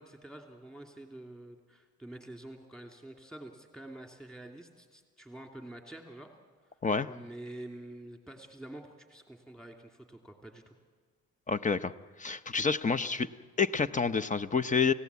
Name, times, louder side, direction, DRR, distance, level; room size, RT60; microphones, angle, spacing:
voice 1, 0.0-6.3 7.1-10.7, right 1 dB, ahead, 3 dB, 2.8 m, -47 dB
voice 2, 11.5-11.9 12.2-13.3 13.6-14.9, left 5 dB, 25° left, 11 dB, 0.8 m, -28 dB
29.0 x 16.5 x 8.3 m, 1.5 s
cardioid pair, 90°, 30 cm